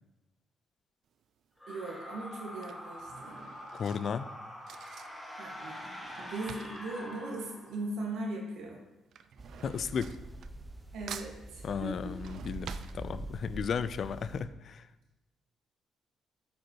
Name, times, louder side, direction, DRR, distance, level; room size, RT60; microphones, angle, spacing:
Drawer open or close / Cutlery silverware, 1.1-1.5 2.3-8.2 8.4-10.8 11.1-13.6 14.0-14.1 14.3-14.4, right 8 dB, 70° right, 0.4 m, -49 dB
sound 1, 1.6-8.0, left 1 dB, 10° left, 1.6 m, -45 dB
voice 1, 1.7-3.5 5.4-8.8 10.9-12.1, right 2 dB, 85° right, 0 dB, 1.8 m, -39 dB
voice 2, 3.7-4.3 9.6-10.2 11.6-14.8, left 6 dB, 55° left, 14 dB, 0.4 m, -34 dB
sound 2, 9.4-14.4, right 2 dB, 20° right, 0.8 m, -44 dB
8.0 x 5.2 x 4.6 m, 1.0 s
cardioid pair, 90°, 0 cm